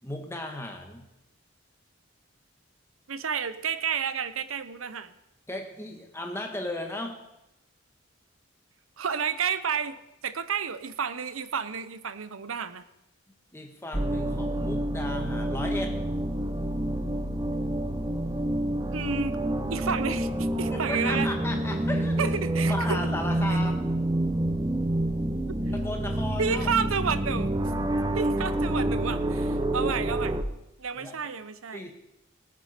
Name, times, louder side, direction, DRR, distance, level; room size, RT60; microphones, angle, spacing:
voice 1, 0.0-1.1 5.5-7.2 13.5-16.0 20.7-22.3 22.7-23.9 25.7-26.7 30.9-31.2 31.7-31.9, left 1 dB, 10° left, 3 dB, 1.6 m, -35 dB
voice 2, 3.1-5.1 9.0-10.0 10.2-12.8 18.9-19.4 19.7-21.3 22.2-23.0 25.5-25.6 26.4-27.7 28.1-30.4 30.8-31.8, right 6 dB, 85° right, 13 dB, 0.8 m, -31 dB
sound 1, 13.9-30.4, right 1 dB, 20° right, 0.7 m, -28 dB
18.5 x 9.2 x 5.2 m, 0.89 s
head